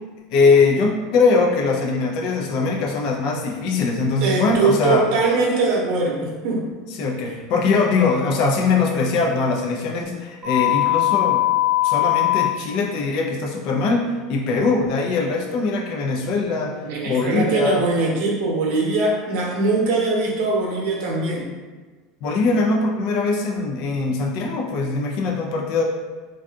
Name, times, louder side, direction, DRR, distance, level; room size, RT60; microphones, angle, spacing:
voice 1, 0.3-5.0 7.0-11.4 11.8-17.8 22.2-25.8, left 4 dB, 50° left, -1 dB, 0.5 m, -21 dB
voice 2, 4.2-6.7 16.8-21.5, right 3 dB, 60° right, -2 dB, 0.8 m, -21 dB
sound 1, 10.4-12.4, left 16 dB, 10° right, 0.7 m, -19 dB
2.6 x 2.4 x 3.5 m, 1.4 s
cardioid pair, 165°, 0 cm